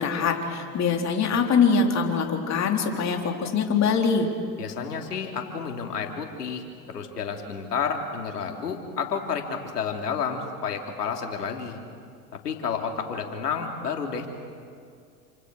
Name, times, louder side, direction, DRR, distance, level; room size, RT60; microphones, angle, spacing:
voice 1, 0.0-4.3, left 5 dB, 35° left, 2 dB, 3.9 m, -23 dB
voice 2, 4.6-11.8 12.4-14.3, left 6 dB, 85° left, 3 dB, 3.3 m, -30 dB
29.0 x 26.5 x 6.4 m, 2.3 s
hypercardioid pair, 95°, 46 cm